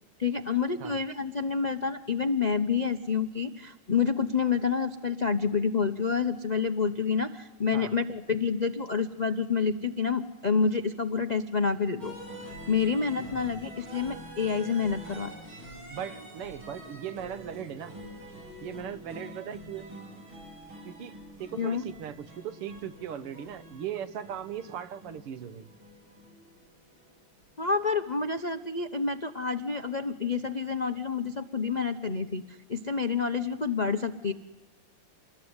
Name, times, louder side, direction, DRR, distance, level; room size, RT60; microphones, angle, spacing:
voice 1, 0.2-12.1 12.7-15.3 21.6-21.8 27.6-32.4 32.7-34.3, left 5 dB, 65° left, 10 dB, 0.4 m, -28 dB
sound 1, 12.0-27.8, right 1 dB, 65° right, 8.5 m, -46 dB
voice 2, 13.2-13.6 15.9-18.0 18.6-19.9 20.9-21.1 21.4-25.7, right 9 dB, 85° right, 13 dB, 2.2 m, -38 dB
27.5 x 21.0 x 9.6 m, 1.1 s
omnidirectional pair, 2.4 m